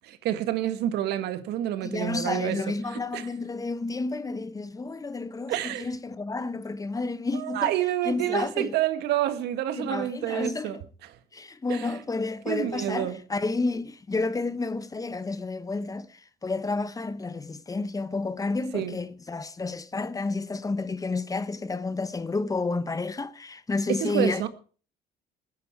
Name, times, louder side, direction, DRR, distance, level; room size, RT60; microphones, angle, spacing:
voice 1, 0.0-2.6 2.9-3.3 5.5-5.9 7.3-11.2 11.7-12.0 12.5-13.2 18.7-18.9 23.9-24.5, right 12 dB, 80° right, 1.8 m, -28 dB
voice 2, 1.8-7.7 8.1-8.7 9.7-10.8 11.3-16.1 16.4-24.5, left 3 dB, 20° left, 1.1 m, -30 dB
21.0 x 9.8 x 4.7 m
cardioid pair, 110°, 17 cm